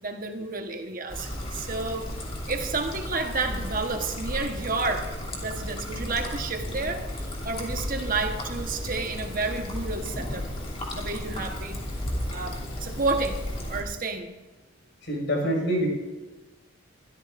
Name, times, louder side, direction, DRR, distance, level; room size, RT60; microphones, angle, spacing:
voice 1, 0.0-2.1 2.5-5.1 5.4-10.5 10.9-11.8 12.3-13.4 13.7-14.3, right 3 dB, 45° right, 5 dB, 1.2 m, -30 dB
Trickle dribble, 1.1-13.8, left 1 dB, 30° left, 2.8 m, -34 dB
voice 2, 15.0-15.9, equal, 60° left, 0 dB, 5.6 m, -25 dB
22.5 x 13.5 x 2.6 m, 1.2 s
head